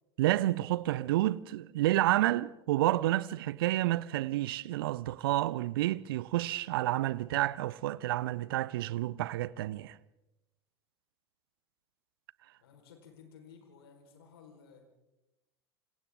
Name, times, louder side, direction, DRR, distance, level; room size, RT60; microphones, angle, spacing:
voice 1, 0.2-10.0, right 15 dB, 60° right, 0.6 m, -30 dB
voice 2, 12.6-14.9, left 6 dB, 65° left, 4.7 m, -55 dB
27.5 x 25.5 x 3.8 m
figure-of-eight pair, 75°, 14 cm